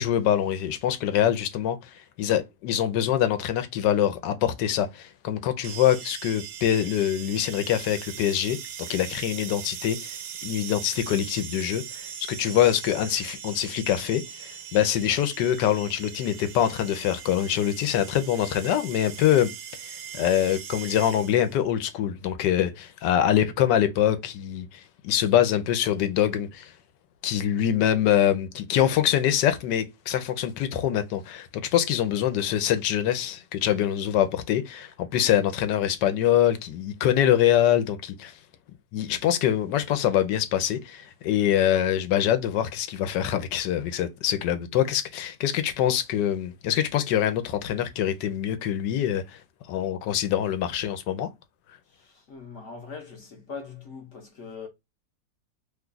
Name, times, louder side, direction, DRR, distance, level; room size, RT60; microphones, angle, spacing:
voice 1, 0.0-8.6 8.9-10.2 10.4-19.5 19.8-26.7 27.2-38.3 38.9-49.4 49.7-51.3, left 10 dB, 85° left, 1.2 m, -24 dB
sound 1, 5.6-21.6, right 9 dB, 75° right, 1.1 m, -40 dB
voice 2, 51.9-54.7, left 5 dB, 55° left, 0.9 m, -41 dB
3.0 x 2.3 x 3.7 m
omnidirectional pair, 1.9 m